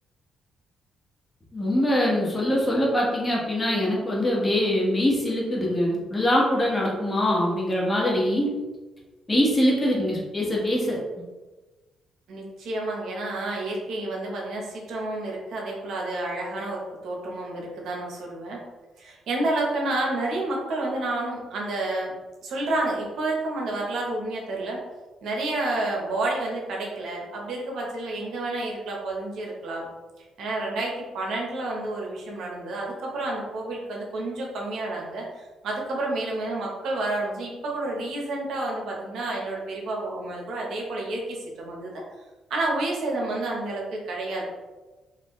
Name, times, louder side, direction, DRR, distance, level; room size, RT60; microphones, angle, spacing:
voice 1, 1.5-8.5 9.3-11.0, left 1 dB, 20° left, -4 dB, 1.3 m, -23 dB
voice 2, 12.3-18.6 19.0-22.1 22.4-24.8 25.2-29.9 30.2-42.0 42.5-44.5, right 2 dB, 75° right, -1 dB, 0.9 m, -30 dB
4.2 x 2.6 x 3.1 m, 1.2 s
cardioid pair, 90°, 0 cm